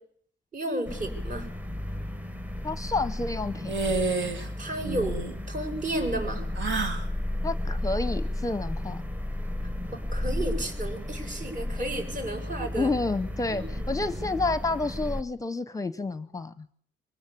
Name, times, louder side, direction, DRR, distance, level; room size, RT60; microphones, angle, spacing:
voice 1, 0.5-1.5 4.6-6.4 9.9-12.9 13.5-13.9, right 1 dB, 40° right, 5 dB, 7.5 m, -32 dB
sound 1, 0.9-15.2, left 1 dB, 10° right, 1.2 m, -33 dB
voice 2, 2.6-3.7 7.4-9.0 12.8-16.7, left 3 dB, 15° left, 13 dB, 0.8 m, -29 dB
sound 2, 3.7-4.5 4.8-5.3 6.5-7.1, right 4 dB, 70° right, 2.9 m, -29 dB
24.0 x 17.0 x 8.5 m, 0.66 s
cardioid pair, 90°, 20 cm